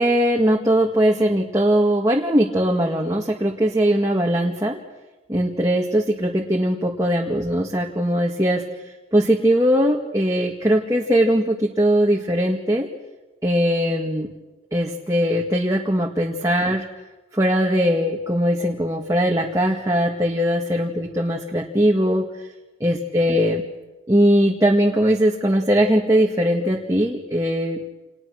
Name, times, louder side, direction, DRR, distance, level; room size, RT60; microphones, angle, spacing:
voice 1, 0.0-4.8 5.3-8.6 9.1-12.9 13.4-14.3 14.7-16.9 17.3-22.3 22.8-23.6 24.1-27.9, equal, 15° right, -1 dB, 2.0 m, -20 dB
29.5 x 29.0 x 6.4 m, 1.1 s
head